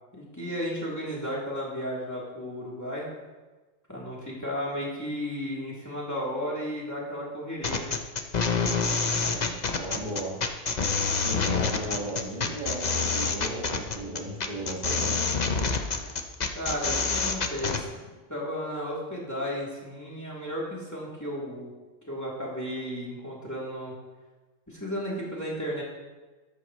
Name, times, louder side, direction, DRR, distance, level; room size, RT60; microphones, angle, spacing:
voice 1, 0.1-3.1 3.9-8.0 16.5-18.0 18.3-21.7 22.0-23.9 24.7-25.8, equal, 15° left, -6 dB, 3.3 m, -34 dB
sound 1, 7.6-17.8, left 4 dB, 40° left, 0.9 m, -27 dB
voice 2, 9.0-10.3 11.1-15.2, right 1 dB, 35° right, -4 dB, 2.2 m, -36 dB
13.5 x 13.0 x 3.2 m, 1.2 s
omnidirectional pair, 1.3 m